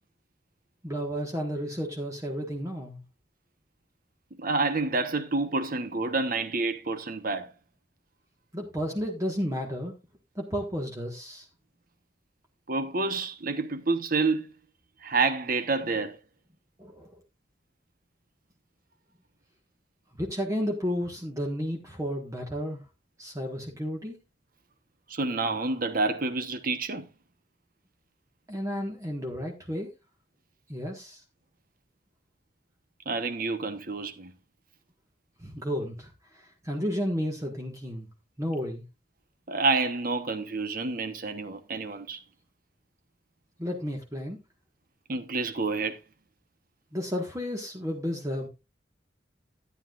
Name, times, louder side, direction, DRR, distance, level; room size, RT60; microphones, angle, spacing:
voice 1, 0.8-3.0 8.5-9.9 10.3-11.5 16.8-17.2 20.2-22.8 23.2-24.2 28.5-29.9 30.7-31.2 35.4-38.1 38.4-38.8 43.6-44.4 46.9-48.5, equal, 20° right, 1.5 m, -32 dB
voice 2, 4.4-7.5 12.7-14.5 15.0-16.2 25.1-27.1 33.1-34.3 39.5-42.2 45.1-46.0, right 3 dB, 50° right, 1.1 m, -28 dB
13.0 x 9.5 x 2.5 m
head